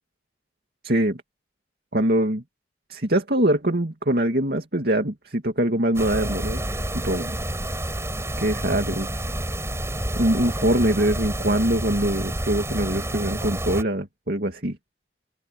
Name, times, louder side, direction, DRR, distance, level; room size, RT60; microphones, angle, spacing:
voice 1, 0.8-1.2 1.9-2.4 2.9-6.6 6.9-7.4 8.4-9.1 10.2-14.8, right 1 dB, 60° right, 2.5 m, -23 dB
sound 1, 5.9-13.8, right 1 dB, 15° right, 7.2 m, -29 dB
head